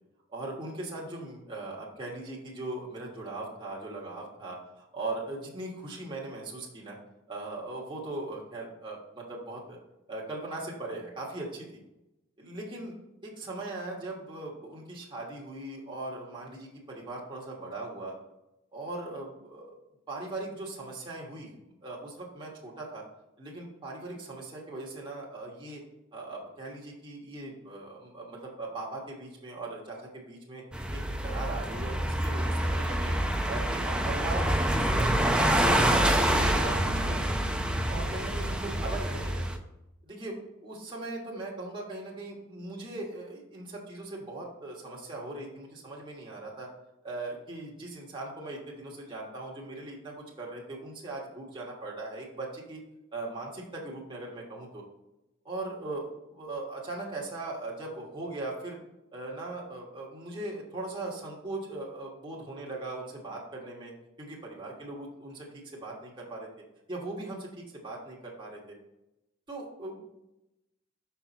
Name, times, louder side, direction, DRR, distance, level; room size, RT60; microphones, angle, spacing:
voice 1, 0.3-7.0 7.3-9.8 10.1-11.8 12.4-12.9 13.2-18.1 18.7-19.7 20.1-23.0 23.4-25.8 26.1-30.6 30.9-35.4 35.8-37.3 37.9-39.6 40.0-46.7 47.0-52.8 53.1-54.8 55.4-58.8 59.1-63.9 64.2-66.5 66.9-68.8 69.5-70.1, right 2 dB, 25° right, -4 dB, 1.4 m, -39 dB
sound 1, 30.7-39.6, right 1 dB, 5° right, 0.7 m, -27 dB
5.8 x 5.7 x 4.1 m, 0.91 s
head